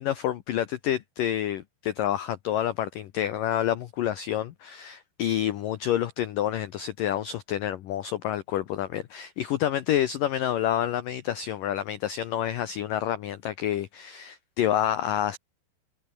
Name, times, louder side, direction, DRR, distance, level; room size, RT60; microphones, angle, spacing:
voice 1, 0.0-15.4, left 11 dB, 85° left, 1.9 m, -28 dB
omnidirectional pair, 5.5 m